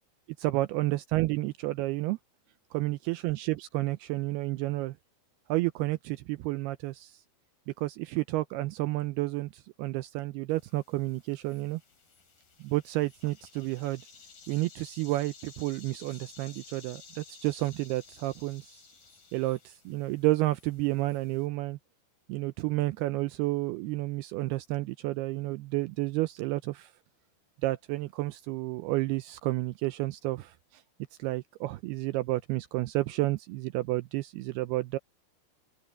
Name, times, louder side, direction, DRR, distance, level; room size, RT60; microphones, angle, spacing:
voice 1, 0.4-2.2 2.7-5.0 5.5-7.2 7.8-11.8 12.6-14.0 14.5-18.7 19.3-21.8 22.3-26.9 27.6-30.8 31.2-35.0, right 18 dB, 85° right, 2.3 m, -31 dB
sound 1, 10.5-21.5, left 5 dB, 50° left, 6.9 m, -54 dB
open air
omnidirectional pair, 5.1 m